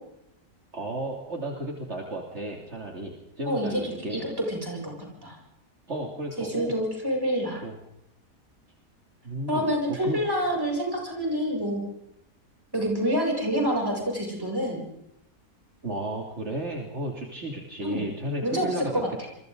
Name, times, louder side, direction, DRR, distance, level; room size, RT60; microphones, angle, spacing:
voice 1, 0.7-4.3 5.9-6.7 7.6-7.7 9.2-10.2 15.8-19.0, right 1 dB, 50° right, 0 dB, 3.2 m, -33 dB
voice 2, 3.4-4.9 5.2-5.4 6.4-7.6 9.5-11.8 12.7-14.8 17.8-18.0 18.4-18.7 18.9-19.3, equal, 15° right, -1 dB, 7.8 m, -27 dB
29.0 x 23.0 x 4.0 m, 0.81 s
omnidirectional pair, 1.6 m